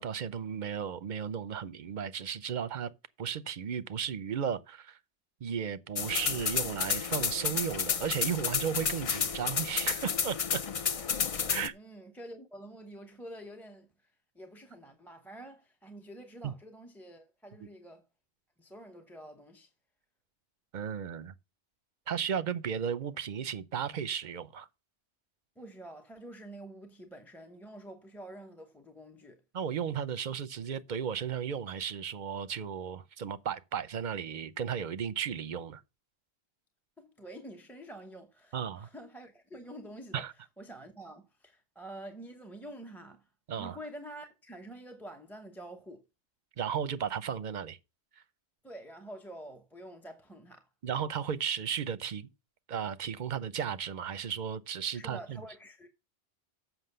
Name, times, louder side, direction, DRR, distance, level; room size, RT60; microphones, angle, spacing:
voice 1, 0.0-2.9 3.2-5.0 5.4-10.6 11.5-11.7 16.4-16.5 20.7-21.3 22.1-24.7 29.5-35.8 38.5-38.9 40.1-40.3 43.5-43.8 46.6-47.8 48.2-48.3 50.8-52.3 52.7-55.4, right 7 dB, 50° right, 0.7 m, -35 dB
sound 1, 6.0-11.7, left 6 dB, 45° left, 0.5 m, -31 dB
voice 2, 11.7-13.9 14.3-18.1 18.6-19.7 25.6-29.4 37.0-40.2 40.6-43.3 43.6-46.0 48.6-50.7 54.9-55.9, right 1 dB, ahead, 0.8 m, -47 dB
7.7 x 5.9 x 6.7 m
omnidirectional pair, 1.1 m